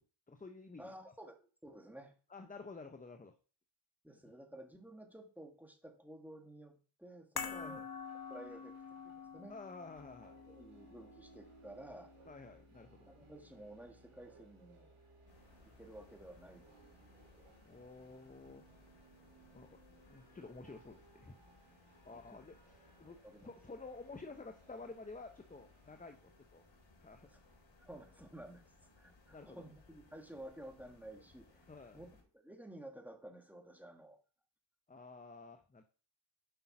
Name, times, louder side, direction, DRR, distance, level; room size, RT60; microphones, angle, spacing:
voice 1, 0.3-0.9 2.3-3.3 7.5-7.8 9.5-10.4 12.3-13.1 17.6-18.6 19.5-19.8 20.1-21.4 21.6-23.2 23.4-26.6 27.0-27.3 29.3-29.6 31.7-32.0 34.9-35.8, left 3 dB, 15° left, 6 dB, 0.9 m, -51 dB
voice 2, 0.8-2.1 4.0-7.9 8.3-8.8 9.0-9.6 10.5-12.1 13.1-15.0 15.6-16.6 16.9-17.5 22.1-22.2 23.0-23.5 27.3-27.4 27.8-28.6 29.0-31.7 31.9-34.2, right 1 dB, 5° right, 2 dB, 2.5 m, -53 dB
sound 1, 7.4-13.8 14.0-14.2, left 6 dB, 50° left, 1.1 m, -48 dB
sound 2, 8.0-26.1, right 3 dB, 90° right, 3.2 m, -65 dB
sound 3, 15.3-32.2, left 3 dB, 65° left, 3.3 m, -65 dB
8.0 x 5.4 x 6.1 m, 0.39 s
cardioid pair, 60°, 48 cm